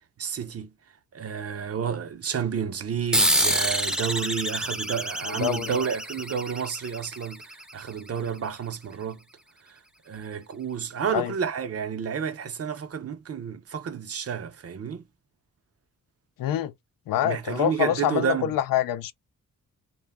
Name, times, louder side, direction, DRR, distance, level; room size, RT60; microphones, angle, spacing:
voice 1, 0.2-0.7 1.1-7.4 7.7-9.2 10.1-15.0 17.2-18.5, right 7 dB, 45° right, 0.7 m, -30 dB
sound 1, 3.1-8.1, equal, ahead, 0.6 m, -27 dB
voice 2, 5.3-5.8 11.1-11.3 16.4-16.7 17.1-19.1, left 12 dB, 90° left, 0.5 m, -26 dB
2.2 x 2.0 x 3.3 m
cardioid pair, 85°, 33 cm